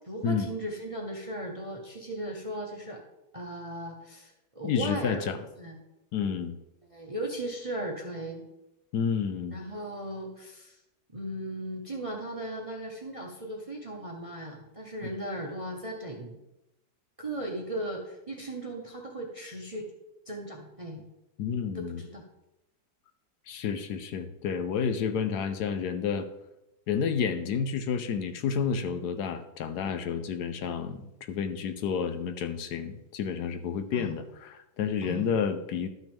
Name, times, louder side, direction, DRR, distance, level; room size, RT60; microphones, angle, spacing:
voice 1, 0.0-3.0 3.3-5.2 5.6-5.8 6.9-8.4 9.5-10.8 11.1-16.4 17.2-19.9 20.3-21.0 21.7-22.2 33.9-34.1 35.0-35.3, right 1 dB, 30° right, 1 dB, 0.7 m, -37 dB
voice 2, 4.6-5.4 6.1-6.6 8.9-9.6 21.4-22.0 23.5-26.3 26.9-35.9, left 6 dB, 75° left, 9 dB, 1.1 m, -30 dB
12.0 x 6.1 x 3.5 m, 0.91 s
omnidirectional pair, 1.8 m